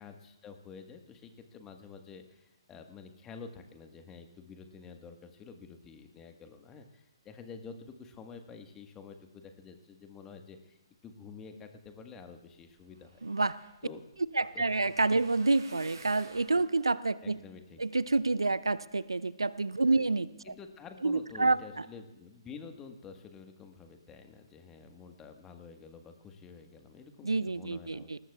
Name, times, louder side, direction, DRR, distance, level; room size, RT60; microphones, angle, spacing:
voice 1, 0.0-13.3 13.8-14.0 14.5-14.7 17.2-17.8 19.9-20.0 20.4-28.1, left 5 dB, 15° left, 5 dB, 1.4 m, -49 dB
sound 1, 12.6-19.0 19.5-20.0 20.4-20.6 20.9-21.0, right 4 dB, 60° right, 2.7 m, -55 dB
voice 2, 13.2-13.6 14.3-17.4 17.8-20.3 21.0-21.6 27.2-28.2, right 3 dB, 80° right, 18 dB, 0.5 m, -28 dB
22.0 x 19.0 x 2.4 m, 0.94 s
figure-of-eight pair, 130°, 3 cm